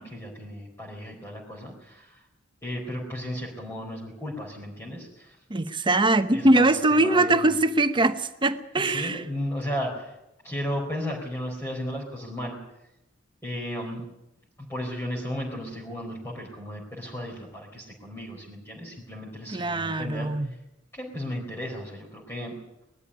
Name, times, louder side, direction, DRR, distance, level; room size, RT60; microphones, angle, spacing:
voice 1, 0.0-2.2 2.6-5.4 6.3-7.5 8.8-10.2 10.4-12.6 13.4-14.0 14.6-20.6 20.9-22.5, equal, 15° left, 4.3 m, -35 dB
voice 2, 5.5-9.2 19.5-20.5, right 2 dB, 25° right, 1.0 m, -22 dB
21.0 x 13.5 x 10.0 m
head